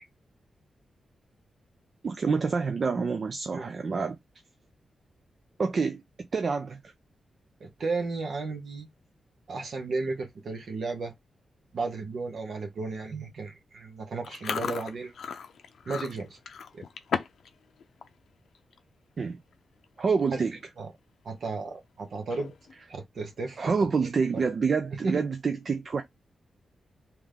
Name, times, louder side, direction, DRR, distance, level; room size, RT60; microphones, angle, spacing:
voice 1, 2.0-4.2 5.6-6.0 6.3-6.9 19.2-19.4 20.0-20.6 23.6-26.0, right 5 dB, 40° right, 0.4 m, -27 dB
voice 2, 7.6-8.9 9.5-11.1 11.7-15.1 15.9-16.4 16.7-16.8 20.8-20.9 21.2-22.5 22.9-23.7 24.3-24.5 25.0-25.2, right 3 dB, 55° right, 1.2 m, -34 dB
Chewing mastication, 14.2-17.5 17.8-18.1 18.5-18.8 19.5-19.6 19.8-20.2 20.6-20.7 22.1-22.7, left 6 dB, 65° left, 0.5 m, -35 dB
3.6 x 3.1 x 3.5 m
wide cardioid pair, 160°, 0 cm